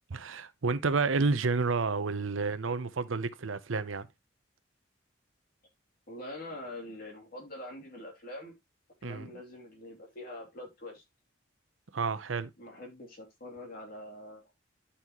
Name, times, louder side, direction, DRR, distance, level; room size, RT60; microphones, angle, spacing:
voice 1, 0.1-4.1 9.0-9.3 11.9-12.5, right 4 dB, 90° right, 0.8 m, -30 dB
voice 2, 6.1-8.5 9.0-11.0 12.6-14.5, left 1 dB, 50° left, 3.0 m, -44 dB
11.0 x 5.6 x 3.0 m
head